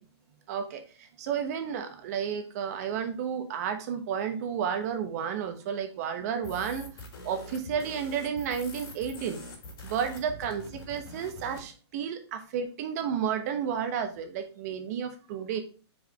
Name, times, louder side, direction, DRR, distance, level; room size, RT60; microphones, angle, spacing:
voice 1, 0.5-0.8 1.2-6.9 7.2-9.4 9.8-10.6 10.9-15.6, right 7 dB, 35° right, 6 dB, 1.1 m, -32 dB
sound 1, 6.4-11.7, left 1 dB, 50° left, 3.6 m, -44 dB
5.2 x 5.0 x 5.3 m, 0.35 s
hypercardioid pair, 165°, 14 cm